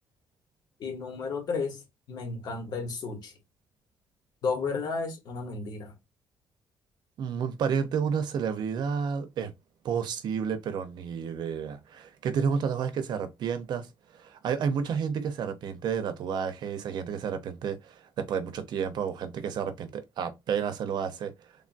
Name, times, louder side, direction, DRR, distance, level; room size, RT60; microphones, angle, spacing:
voice 1, 0.8-1.8 2.1-3.3 4.4-5.9, left 4 dB, 55° left, 1.1 m, -32 dB
voice 2, 7.2-9.5 9.8-13.9 14.1-21.3, right 7 dB, 60° right, 0.6 m, -31 dB
3.4 x 2.3 x 2.5 m
cardioid pair, 155°, 8 cm